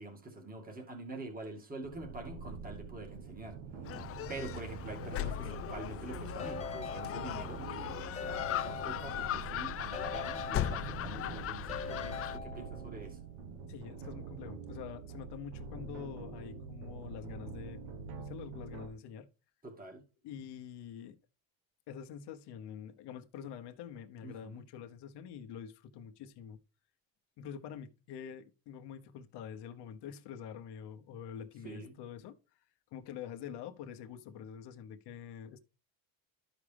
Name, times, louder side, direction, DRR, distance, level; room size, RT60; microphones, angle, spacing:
voice 1, 0.0-3.6 4.3-13.2 19.6-20.0 24.2-24.6 31.6-31.9, right 2 dB, 20° right, 2.3 m, -46 dB
sound 1, 1.8-18.9, right 5 dB, 85° right, 1.5 m, -45 dB
Gull seagull, 3.8-12.4, left 11 dB, 35° left, 0.4 m, -38 dB
Keyboard (musical) / Ringtone, 6.4-7.7 8.2-9.5 9.9-11.3 11.7-13.0, left 5 dB, 15° left, 1.2 m, -43 dB
voice 2, 13.7-17.8 18.1-19.3 20.2-21.2 21.9-26.6 27.4-32.4 32.9-35.6, left 8 dB, 65° left, 1.0 m, -46 dB
13.0 x 5.0 x 3.4 m
cardioid pair, 120°, 43 cm